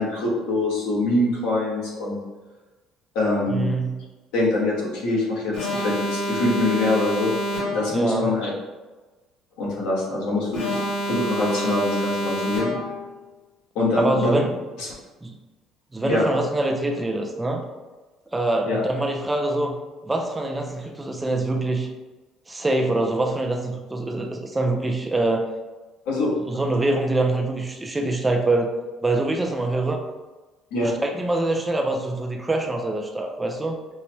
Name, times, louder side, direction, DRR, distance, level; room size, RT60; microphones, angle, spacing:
voice 1, 0.0-2.2 3.1-3.7 4.3-7.3 7.7-8.5 9.6-12.7 13.7-14.3 14.8-14.9 16.0-16.2 18.7-18.8 26.1-26.3 30.7-30.9, left 2 dB, 90° left, -5 dB, 1.4 m, -24 dB
voice 2, 3.5-4.0 7.9-8.3 14.0-14.6 15.2-15.3 15.9-17.6 18.3-19.8 20.0-21.9 22.5-25.4 26.5-28.7 29.0-30.0 30.8-33.8, right 2 dB, 15° right, 3 dB, 0.4 m, -24 dB
Alarm, 5.5-8.1 10.5-13.1, equal, 70° left, 1.3 m, -27 dB
5.4 x 2.1 x 2.9 m, 1.2 s
cardioid pair, 130°, 0 cm